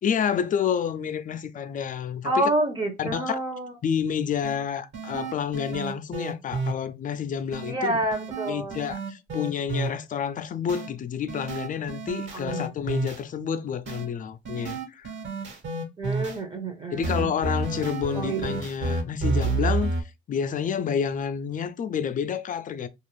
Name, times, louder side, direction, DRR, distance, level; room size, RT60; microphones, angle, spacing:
voice 1, 0.0-2.5 3.0-3.4 3.8-8.0 8.5-15.1 16.9-20.0 20.3-22.9, left 7 dB, 40° left, 0.4 m, -29 dB
voice 2, 2.2-3.7 7.7-8.8 12.3-12.6 16.0-17.3 18.1-18.6, right 2 dB, 25° right, 0.6 m, -28 dB
sound 1, 4.4-4.5 4.9-6.7 7.5-7.7 8.1-9.9 10.7-10.9 11.3-13.2 13.9-14.1 14.5-16.4 17.0-20.0, right 3 dB, 70° right, 1.3 m, -30 dB
2.5 x 2.4 x 3.0 m
cardioid pair, 90°, 20 cm